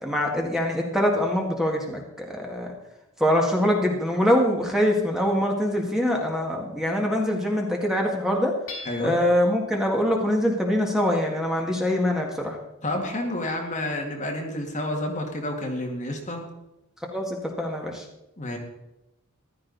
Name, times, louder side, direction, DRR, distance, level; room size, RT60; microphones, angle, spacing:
voice 1, 0.0-2.7 3.2-8.6 9.0-12.6 17.1-18.1, left 1 dB, ahead, 0 dB, 1.9 m, -24 dB
Hammer / Chink clink, 8.7-9.5, left 3 dB, 60° left, 5.0 m, -39 dB
voice 2, 8.8-9.2 12.8-16.4 18.4-18.6, left 1 dB, 35° left, 1 dB, 2.0 m, -29 dB
15.0 x 12.5 x 4.1 m, 0.92 s
head